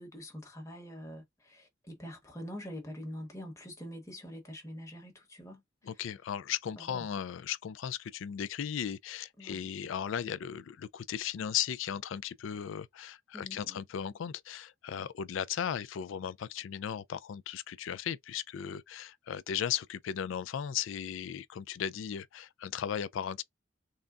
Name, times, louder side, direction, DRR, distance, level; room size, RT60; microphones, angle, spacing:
voice 1, 0.0-5.6 6.9-7.0 9.4-9.7 13.3-13.8, equal, 15° left, 1.0 m, -45 dB
voice 2, 5.8-23.4, left 9 dB, 80° left, 0.3 m, -36 dB
3.8 x 2.1 x 2.3 m
head